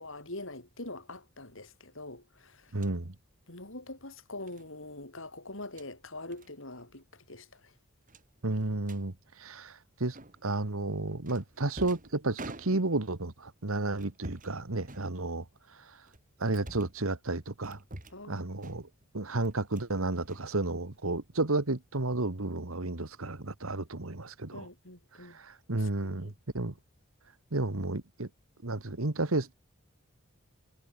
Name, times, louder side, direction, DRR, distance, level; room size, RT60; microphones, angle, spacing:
voice 1, 0.0-2.8 3.5-7.7 18.1-18.5 24.5-25.4 25.7-26.3, left 2 dB, 65° left, 7.7 m, -44 dB
sound 1, 2.7-3.0 4.5-4.7 5.5-5.9 6.3-6.5 6.8-7.0 7.3-7.4 8.1-9.0 10.1-10.6 11.3-13.1 13.9-14.6 14.8-15.6 16.1-17.0 17.6-18.3 18.6-19.1 19.4-19.9 20.2-21.1, right 1 dB, 40° right, 3.8 m, -48 dB
voice 2, 2.7-3.2 8.4-10.2 10.4-15.5 15.8-16.0 16.4-17.8 18.3-18.9 19.1-24.7 25.2-26.7 27.5-28.3 28.6-29.5, right 2 dB, 75° right, 1.8 m, -32 dB
head